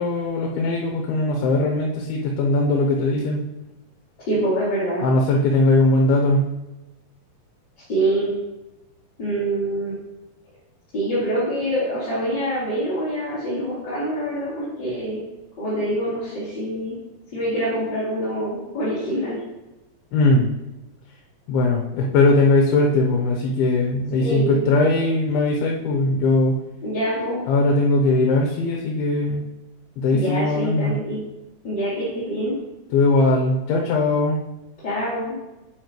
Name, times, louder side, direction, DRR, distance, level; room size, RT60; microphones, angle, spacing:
voice 1, 0.0-3.4 5.0-6.5 20.1-20.5 21.5-26.6 27.5-29.4 30.0-31.0 32.9-34.4, left 2 dB, 80° left, 0 dB, 2.7 m, -20 dB
voice 2, 4.3-5.0 7.9-8.3 9.2-10.0 10.9-15.2 15.6-17.0 17.3-19.4 24.2-24.6 26.8-27.4 30.1-31.2 31.6-32.5 34.8-35.4, right 1 dB, 30° left, -11 dB, 2.7 m, -25 dB
9.7 x 8.0 x 3.1 m, 0.99 s
omnidirectional pair, 4.5 m